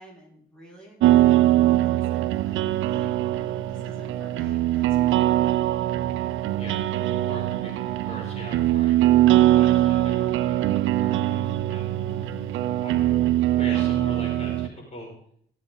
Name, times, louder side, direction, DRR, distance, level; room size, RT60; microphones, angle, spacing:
voice 1, 0.0-3.1 3.7-5.7 13.7-13.9, equal, 5° left, -6 dB, 6.1 m, -48 dB
sound 1, 1.0-14.7, right 14 dB, 80° right, 0.7 m, -22 dB
voice 2, 7.3-9.0 9.5-11.9 12.2-13.1 13.6-15.1, equal, 35° left, -2 dB, 6.2 m, -41 dB
22.0 x 8.3 x 4.1 m, 0.65 s
cardioid pair, 90°, 20 cm